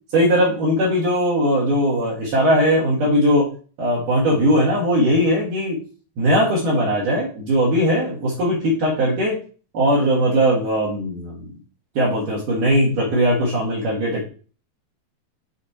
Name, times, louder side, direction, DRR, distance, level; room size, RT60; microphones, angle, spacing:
voice 1, 0.1-3.5 3.8-5.8 6.2-9.4 9.7-11.5 12.0-14.3, equal, 65° right, -6 dB, 3.2 m, -19 dB
7.3 x 4.3 x 4.2 m, 0.39 s
omnidirectional pair, 4.1 m